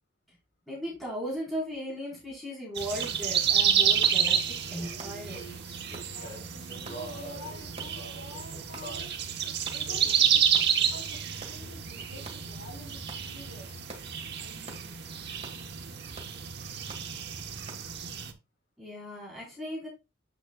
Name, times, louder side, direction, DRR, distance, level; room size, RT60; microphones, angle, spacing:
voice 1, 0.7-5.4 18.8-19.9, equal, ahead, 4.1 m, -37 dB
sound 1, 2.7-18.3, right 8 dB, 60° right, 1.1 m, -30 dB
sound 2, 3.0-3.2 4.0-4.2 5.0-5.2 5.9-6.1 6.8-7.0 7.8-8.0 8.7-8.9 9.6-9.8 10.5-10.7 11.4-11.6 12.2-12.4 13.1-13.3 13.9-14.1 14.7-14.9 15.4-15.6 16.1-16.3 16.9-17.1 17.7-17.8, right 2 dB, 35° right, 1.7 m, -46 dB
Male singing, 4.7-9.1 9.8-10.3 10.9-11.2 11.4-12.4, right 2 dB, 55° left, 3.7 m, -46 dB
voice 2, 6.1-10.4 10.8-13.8 14.4-15.0, left 1 dB, 70° left, 4.9 m, -48 dB
9.4 x 7.0 x 2.3 m
head